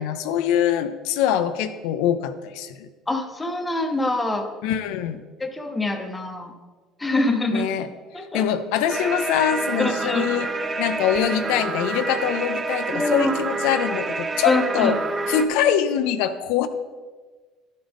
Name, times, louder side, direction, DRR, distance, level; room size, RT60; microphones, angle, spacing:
voice 1, 0.0-2.9 4.6-5.2 7.5-7.9 8.3-10.5 10.8-15.0 15.3-16.7, left 9 dB, 80° left, 9 dB, 0.5 m, -23 dB
voice 2, 3.1-4.5 5.4-6.5 7.0-7.7 8.1-8.5 9.8-10.3 12.9-13.3 14.4-14.9, left 2 dB, 10° left, 5 dB, 0.8 m, -24 dB
sound 1, 8.9-15.5, right 3 dB, 20° right, 0.6 m, -28 dB
11.5 x 7.6 x 3.5 m, 1.4 s
cardioid pair, 140°, 0 cm